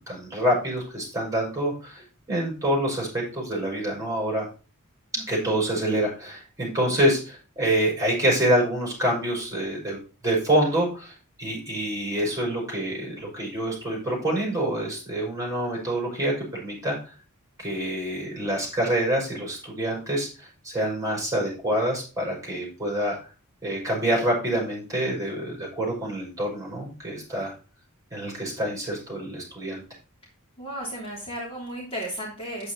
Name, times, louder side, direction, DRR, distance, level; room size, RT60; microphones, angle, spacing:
voice 1, 0.0-4.4 5.1-10.0 10.2-11.1 11.4-17.0 17.6-23.2 23.6-27.5 28.1-29.8, right 1 dB, 15° right, -2 dB, 5.8 m, -26 dB
voice 2, 5.2-5.5 30.6-32.7, equal, 25° left, -3 dB, 3.1 m, -34 dB
9.1 x 8.1 x 4.0 m, 0.34 s
head